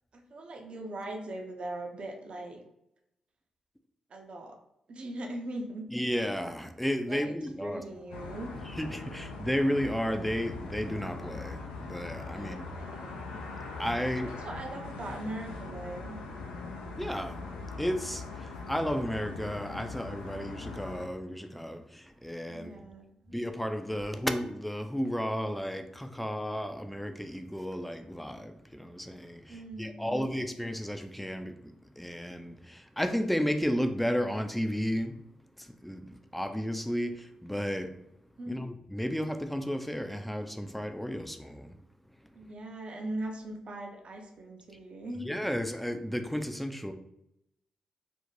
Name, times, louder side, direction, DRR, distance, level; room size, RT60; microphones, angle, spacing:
voice 1, 0.1-2.6 4.1-4.6 4.9-5.9 7.1-7.3 7.6-8.6 12.3-13.3 14.2-16.2 22.5-23.4 29.5-30.3 38.4-38.6 42.3-45.3, right 1 dB, 55° right, 0.6 m, -40 dB
voice 2, 5.9-7.8 8.7-12.7 13.8-14.3 17.0-17.4 17.8-22.8 23.3-35.2 35.6-37.9 38.5-41.8 45.2-46.9, equal, 5° left, 0.4 m, -33 dB
sound 1, 8.1-21.1, left 3 dB, 85° left, 0.4 m, -41 dB
2.5 x 2.1 x 3.1 m
hypercardioid pair, 40°, 2 cm